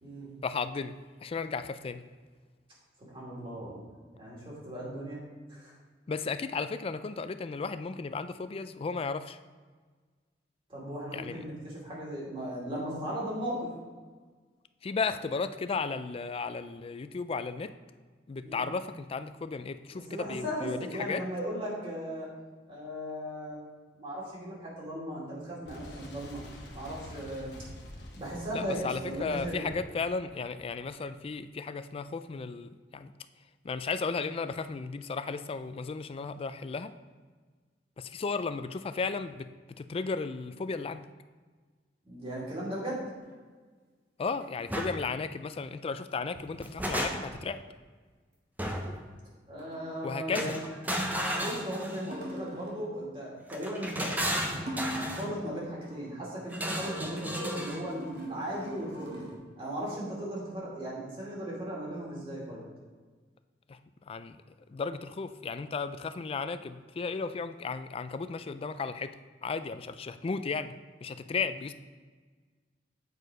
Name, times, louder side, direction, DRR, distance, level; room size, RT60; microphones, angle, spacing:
voice 1, 0.4-1.0 1.2-2.0 6.1-9.4 11.1-11.4 14.8-17.7 18.3-21.2 28.5-33.1 33.6-36.9 38.0-39.5 39.8-41.1 44.2-47.6 50.0-50.6 63.7-63.8 64.1-64.4 64.7-69.1 69.4-70.7 71.0-71.7, left 4 dB, 30° left, 11 dB, 0.3 m, -34 dB
voice 2, 3.1-3.9 4.2-5.2 5.5-5.8 10.7-13.7 18.4-18.7 19.9-22.3 22.7-23.6 23.9-26.4 26.7-27.6 28.2-29.7 42.0-43.0 49.5-50.6 51.4-54.1 54.7-59.2 59.6-62.6, equal, 30° right, -5 dB, 2.4 m, -37 dB
Boom, 25.7-31.2, left 1 dB, 70° left, 1.2 m, -47 dB
sound 1, 43.2-43.3 44.4-44.8 46.9-47.0 47.3-47.4 49.6-50.1 52.1-52.9 54.6-55.3 55.6-59.4, right 1 dB, 65° right, 2.0 m, -43 dB
sound 2, 44.7-44.9 46.4-47.5 48.6-49.0 50.3-52.2 53.5-55.3 56.5-57.9, equal, 10° right, 0.7 m, -33 dB
8.1 x 4.6 x 4.9 m, 1.5 s
head